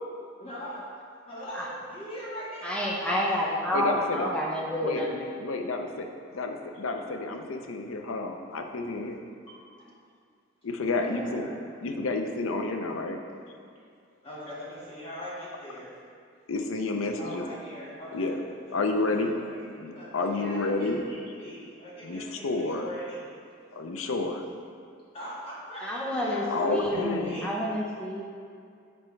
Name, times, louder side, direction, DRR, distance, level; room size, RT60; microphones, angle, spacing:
voice 1, 0.4-0.9 1.2-3.4 9.8-9.9 10.9-11.5 12.0-12.1 14.2-15.9 17.2-19.1 19.4-23.2 25.1-27.5, equal, 30° left, -8 dB, 1.6 m, -41 dB
voice 2, 2.6-5.3 25.8-28.2, equal, 5° left, -4 dB, 0.8 m, -29 dB
voice 3, 3.7-4.3 4.8-5.0 5.4-6.1 6.3-9.2 10.6-11.4 11.8-13.2 16.5-17.5 18.1-18.4 18.7-19.3 19.8-21.0 22.0-22.9 23.7-24.4 26.5-27.5, left 3 dB, 90° left, 4 dB, 0.6 m, -30 dB
8.6 x 4.5 x 3.2 m, 2.3 s
head